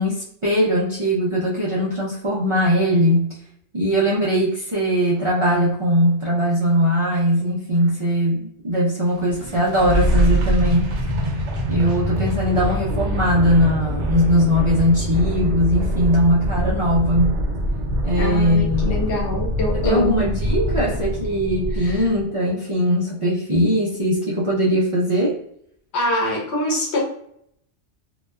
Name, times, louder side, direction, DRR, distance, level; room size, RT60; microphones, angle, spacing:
voice 1, 0.0-3.4 3.7-10.9 11.7-17.4 18.0-18.9 19.7-25.4, equal, 50° right, -6 dB, 0.3 m, -20 dB
sound 1, 9.1-22.2, equal, 85° right, 0.9 m, -24 dB
voice 2, 18.2-20.3 21.8-22.1 25.9-27.0, left 1 dB, 70° left, -1 dB, 1.0 m, -24 dB
2.9 x 2.1 x 2.2 m, 0.71 s
omnidirectional pair, 1.2 m